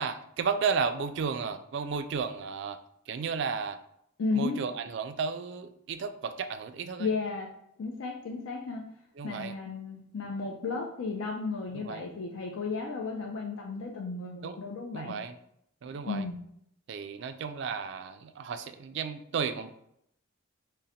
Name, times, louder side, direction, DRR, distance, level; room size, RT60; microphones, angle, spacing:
voice 1, 0.0-2.8 3.1-3.8 4.3-7.1 9.2-9.5 11.7-12.1 14.4-14.6 14.9-15.4 15.8-16.2 16.9-19.7, right 5 dB, 55° right, 9 dB, 0.3 m, -33 dB
voice 2, 4.2-4.6 7.0-7.5 7.8-8.8 9.2-15.1 16.1-16.4, left 4 dB, 75° left, 0 dB, 0.5 m, -34 dB
3.8 x 2.1 x 4.1 m, 0.73 s
head